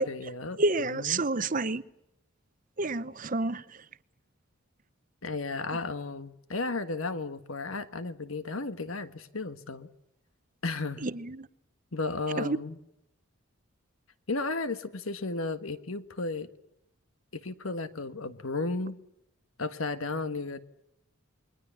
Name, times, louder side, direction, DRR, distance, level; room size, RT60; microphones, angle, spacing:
voice 1, 0.0-1.2 5.2-9.9 10.6-11.1 11.9-12.8 14.3-16.5 17.3-19.0 19.6-20.6, left 3 dB, 80° left, 1.6 m, -34 dB
voice 2, 0.6-1.8 2.8-3.8 11.0-11.5 12.3-12.6, right 2 dB, 40° right, 0.8 m, -29 dB
28.5 x 22.0 x 7.1 m
head